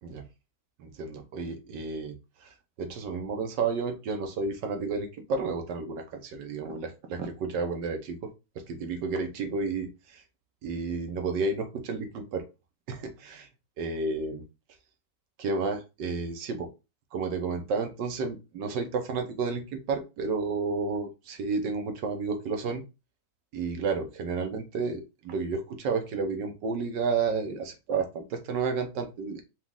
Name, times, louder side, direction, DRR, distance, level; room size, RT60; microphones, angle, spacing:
voice 1, 0.8-8.3 8.5-10.2 10.6-12.5 12.9-13.5 13.8-14.4 15.4-16.7 17.1-22.8 23.5-29.4, right 4 dB, 90° right, 5 dB, 1.5 m, -31 dB
5.1 x 2.4 x 3.6 m, 0.27 s
omnidirectional pair, 1.8 m